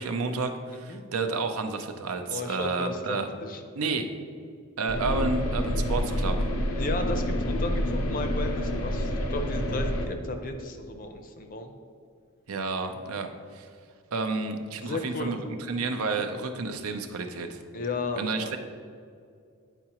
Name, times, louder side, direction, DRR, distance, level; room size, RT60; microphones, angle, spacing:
voice 1, 0.0-3.3 3.8-4.1 4.8-6.4 12.5-13.7 14.1-15.4 15.7-17.6 18.2-18.6, right 3 dB, 85° right, 6 dB, 0.6 m, -30 dB
voice 2, 2.3-3.6 6.8-11.7 14.8-15.4 17.7-18.5, left 2 dB, 40° left, 6 dB, 0.5 m, -34 dB
sound 1, 4.9-10.1, left 1 dB, 85° left, 0.7 m, -28 dB
9.0 x 4.7 x 2.9 m, 2.3 s
head